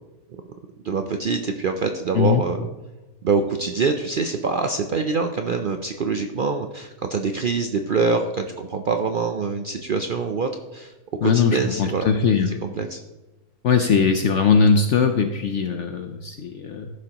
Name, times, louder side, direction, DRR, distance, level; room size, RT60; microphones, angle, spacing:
voice 1, 0.8-2.7 3.2-10.9 11.2-12.1 12.5-13.0, right 4 dB, 80° right, 5 dB, 0.4 m, -25 dB
voice 2, 11.2-12.6 13.6-16.9, left 5 dB, 60° left, 6 dB, 0.8 m, -20 dB
15.0 x 6.3 x 2.9 m, 1.1 s
omnidirectional pair, 1.6 m